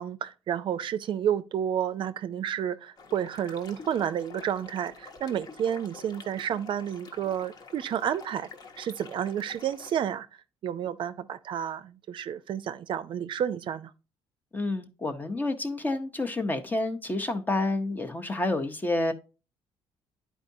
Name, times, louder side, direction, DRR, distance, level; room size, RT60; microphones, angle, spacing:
voice 1, 0.0-8.5 8.8-10.3 10.6-13.9, right 9 dB, 55° right, 0.5 m, -30 dB
sound 1, 3.0-10.0, left 4 dB, 40° left, 1.0 m, -48 dB
voice 2, 14.5-19.1, left 2 dB, 15° left, 0.7 m, -29 dB
11.5 x 4.6 x 2.7 m
cardioid pair, 140°, 10 cm